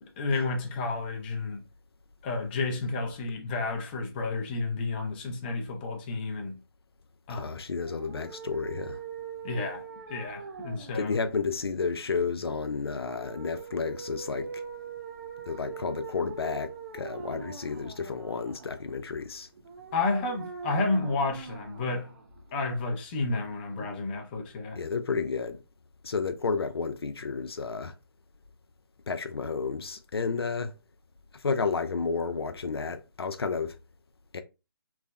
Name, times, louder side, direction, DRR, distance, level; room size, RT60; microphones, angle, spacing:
voice 1, 0.0-1.6 2.2-6.6 7.3-7.6 9.4-9.8 10.1-11.1 19.9-22.2 22.5-24.8, left 3 dB, 25° left, 0.6 m, -31 dB
voice 2, 7.3-9.0 10.9-14.6 15.5-19.5 24.8-25.6 26.0-27.9 29.1-30.7 31.3-33.8 34.3-34.4, left 5 dB, 90° left, 0.4 m, -31 dB
sound 1, 7.8-22.8, right 6 dB, 45° right, 0.5 m, -43 dB
3.2 x 2.0 x 2.3 m
figure-of-eight pair, 145°, 13 cm